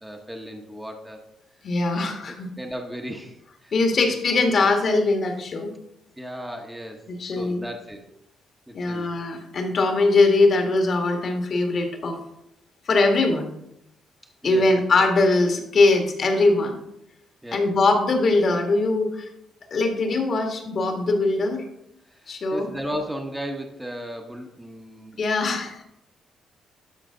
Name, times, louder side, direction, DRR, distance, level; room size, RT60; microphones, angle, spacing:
voice 1, 0.0-1.2 1.9-3.7 4.0-4.2 6.2-8.1 8.7-9.2 14.4-14.7 15.0-15.1 17.4-17.7 22.1-25.5, equal, 5° right, 2 dB, 1.1 m, -36 dB
voice 2, 1.6-2.5 3.7-5.7 7.1-7.6 8.7-12.2 12.9-13.5 14.4-16.8 17.5-19.3 19.7-21.6 22.3-22.7 25.2-25.8, left 3 dB, 50° left, 4 dB, 1.7 m, -21 dB
12.0 x 5.0 x 3.8 m, 0.80 s
cardioid pair, 90°, 0 cm